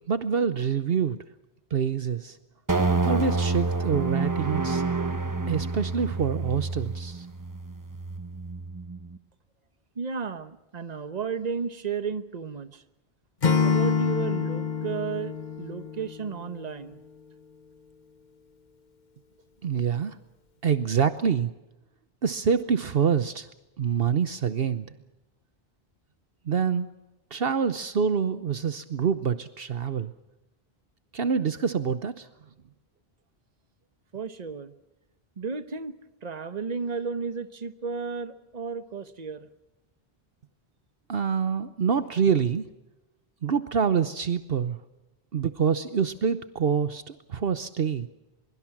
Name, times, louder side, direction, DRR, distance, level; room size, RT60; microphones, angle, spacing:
voice 1, 0.1-1.2 1.7-2.4 3.0-4.8 5.5-7.3 19.6-20.2 20.6-21.5 22.2-23.5 23.8-24.9 26.5-26.9 27.3-30.1 31.1-32.3 41.1-42.6 43.4-44.8 45.3-48.1, right 7 dB, 65° right, 12 dB, 1.1 m, -26 dB
sound 1, 2.7-9.2, right 3 dB, 20° right, 1.0 m, -28 dB
voice 2, 9.9-12.8 13.6-17.0 34.1-34.7 35.4-35.9 36.2-39.5, right 5 dB, 40° right, 12 dB, 1.2 m, -33 dB
Acoustic guitar / Strum, 13.4-16.5, left 6 dB, 45° left, 1.3 m, -26 dB
23.5 x 23.0 x 6.0 m, 0.98 s
omnidirectional pair, 1.1 m